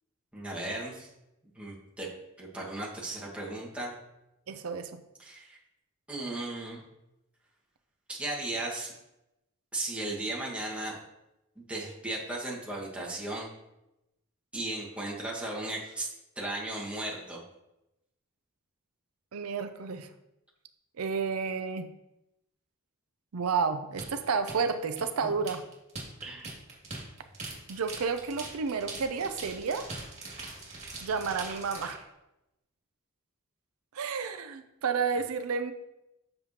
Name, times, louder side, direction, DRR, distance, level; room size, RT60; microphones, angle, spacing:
voice 1, 0.3-1.1 1.5-2.1 2.4-3.9 5.2-5.6 6.1-6.8 8.1-8.9 9.7-11.0 11.5-13.5 14.5-16.1 16.3-17.4 25.2-25.3 26.2-26.5, right 2 dB, 5° right, -4 dB, 1.6 m, -36 dB
voice 2, 4.5-4.9 19.3-20.1 21.0-21.9 23.3-25.6 27.7-29.9 31.0-32.0 33.9-35.7, right 5 dB, 90° right, 9 dB, 0.5 m, -31 dB
sound 1, 24.0-32.0, right 3 dB, 35° right, 2.3 m, -42 dB
7.2 x 6.6 x 2.9 m, 0.90 s
head